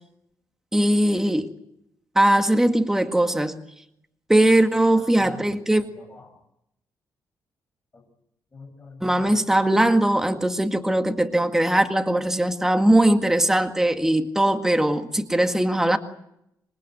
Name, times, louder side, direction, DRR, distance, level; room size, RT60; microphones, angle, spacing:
voice 1, 0.7-1.5 2.2-3.6 4.3-5.8 9.0-16.0, right 1 dB, 5° right, 6 dB, 1.9 m, -20 dB
voice 2, 4.9-6.4 7.9-8.0 8.5-9.3, left 3 dB, 25° left, 6 dB, 6.9 m, -46 dB
27.0 x 22.0 x 7.9 m, 0.79 s
cardioid pair, 130°, 7 cm